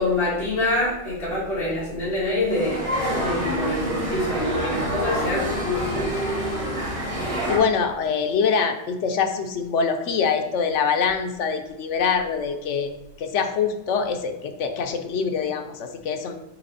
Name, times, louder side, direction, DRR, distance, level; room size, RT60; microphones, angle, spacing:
voice 1, 0.0-2.8 3.1-6.1, left 2 dB, 55° left, -8 dB, 2.5 m, -25 dB
sound 1, 2.5-7.6, equal, 30° right, 1.6 m, -27 dB
voice 2, 7.5-12.9 13.2-16.3, left 6 dB, 90° left, 6 dB, 1.1 m, -24 dB
7.5 x 3.3 x 4.0 m, 0.94 s
omnidirectional pair, 1.2 m